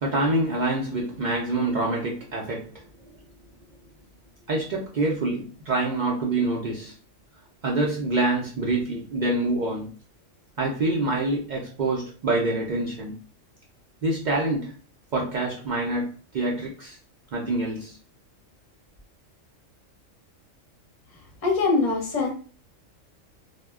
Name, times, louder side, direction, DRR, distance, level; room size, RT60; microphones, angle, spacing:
voice 1, 0.0-2.7 4.5-6.9 7.6-9.9 10.6-13.1 14.0-14.7 15.1-17.0 17.3-18.0, right 2 dB, 65° right, 0.4 m, -26 dB
voice 2, 21.4-22.3, left 3 dB, 35° left, 0.7 m, -22 dB
2.1 x 2.1 x 3.4 m
omnidirectional pair, 1.3 m